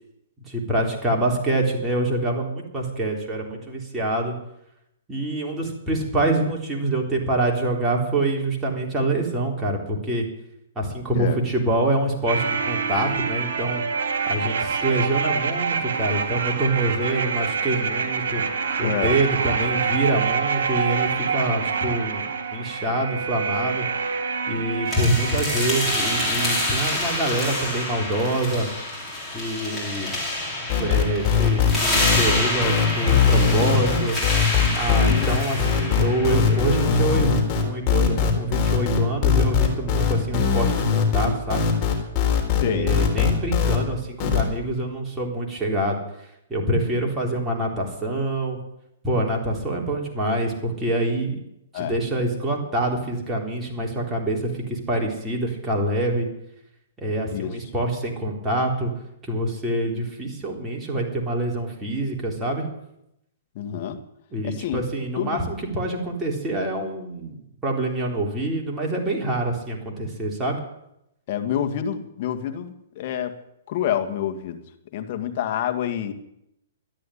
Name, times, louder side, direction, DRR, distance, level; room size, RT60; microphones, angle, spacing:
voice 1, 0.5-4.3 5.1-10.3 10.8-13.8 14.3-18.4 18.8-22.2 22.5-23.9 24.5-28.7 29.3-30.1 30.8-34.2 34.7-41.7 42.6-46.0 46.5-48.6 49.0-51.4 51.7-56.3 57.0-58.9 59.2-62.7 64.3-67.3 67.6-70.6, right 1 dB, 15° right, -1 dB, 3.7 m, -25 dB
sound 1, 12.3-27.3 27.6-27.7, right 5 dB, 70° right, 3.1 m, -26 dB
voice 2, 18.8-19.2 35.1-35.4 42.6-43.0 51.7-52.0 57.3-57.6 63.6-64.0 64.4-64.8 65.2-65.4 71.3-73.3 73.7-74.6 74.9-76.1, left 9 dB, 45° left, 7 dB, 1.9 m, -27 dB
sound 2, 24.9-36.8, left 1 dB, 5° left, 6.3 m, -27 dB
sound 3, 30.7-43.8 44.2-44.4, left 7 dB, 30° left, 3.9 m, -20 dB
13.0 x 10.5 x 10.0 m, 0.82 s
hypercardioid pair, 145°, 0 cm